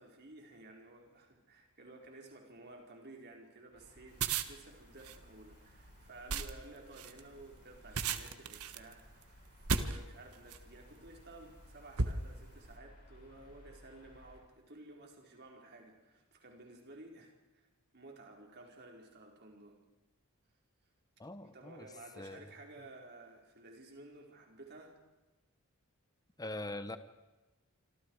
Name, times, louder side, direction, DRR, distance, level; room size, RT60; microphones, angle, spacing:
voice 1, 0.0-17.7 17.9-19.8 21.4-25.0, right 2 dB, 50° right, 1 dB, 4.7 m, -54 dB
sound 1, 3.7-14.4, left 1 dB, 40° left, 6.1 m, -60 dB
sound 2, 4.1-10.7 11.4-11.6 12.0-12.7, right 4 dB, 85° right, 1.5 m, -36 dB
voice 2, 21.2-21.9 22.2-22.5 26.4-27.0, left 2 dB, 15° left, 11 dB, 1.0 m, -42 dB
27.0 x 26.0 x 4.9 m, 1.1 s
head